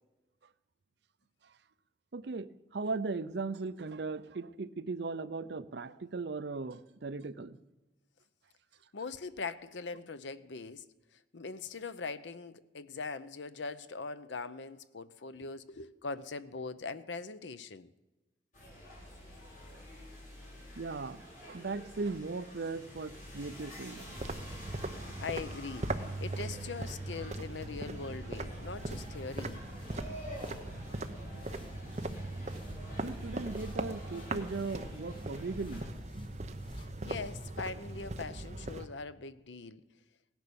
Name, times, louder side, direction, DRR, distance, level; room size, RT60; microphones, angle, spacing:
voice 1, 2.1-7.6 20.8-24.1 33.0-35.8 36.8-36.9, right 3 dB, 65° right, 0.6 m, -38 dB
voice 2, 8.9-10.9 11.3-17.9 25.2-29.6 36.8-39.8, left 4 dB, 80° left, 0.7 m, -41 dB
sound 1, 18.5-35.9, left 1 dB, 45° left, 4.1 m, -49 dB
sound 2, 24.1-38.9, right 2 dB, 35° right, 0.8 m, -40 dB
sound 3, 28.5-37.5, left 1 dB, 25° left, 0.8 m, -52 dB
17.5 x 10.5 x 7.0 m
head